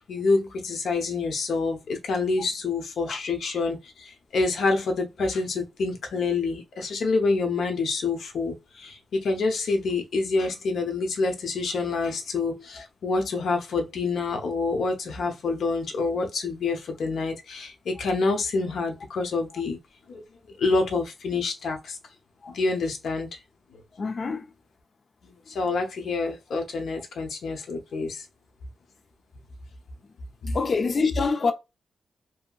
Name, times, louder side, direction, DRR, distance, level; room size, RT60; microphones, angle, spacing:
voice 1, 0.1-19.8 20.1-22.0 22.5-23.3 25.2-28.2 30.4-30.6, left 3 dB, 75° left, 0.7 m, -27 dB
voice 2, 24.0-24.5 30.5-31.5, left 4 dB, 40° left, 0.4 m, -25 dB
2.7 x 2.7 x 2.3 m
wide cardioid pair, 155°, 0 cm